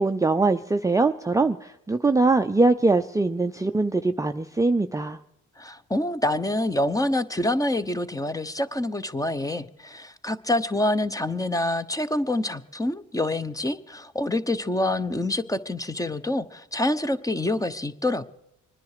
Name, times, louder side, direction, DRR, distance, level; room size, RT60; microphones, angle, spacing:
voice 1, 0.0-5.2, right 3 dB, 10° right, 7 dB, 0.5 m, -22 dB
voice 2, 5.6-18.2, left 1 dB, 10° left, 12 dB, 0.9 m, -26 dB
25.0 x 10.5 x 5.0 m, 0.86 s
cardioid pair, 90°, 30 cm